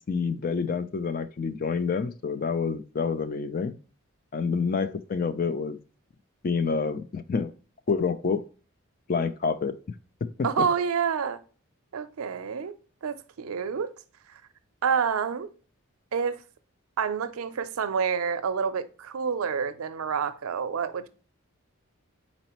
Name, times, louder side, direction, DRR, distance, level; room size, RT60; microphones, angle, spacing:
voice 1, 0.0-3.7 4.3-5.8 6.4-7.5 7.9-8.4 9.1-9.8 10.2-10.5, left 5 dB, 40° left, 0.3 m, -28 dB
voice 2, 10.4-11.4 11.9-12.7 13.0-13.9 14.3-14.4 14.8-15.5 16.1-16.4 17.0-21.1, right 6 dB, 90° right, 0.5 m, -28 dB
4.1 x 4.1 x 2.9 m
head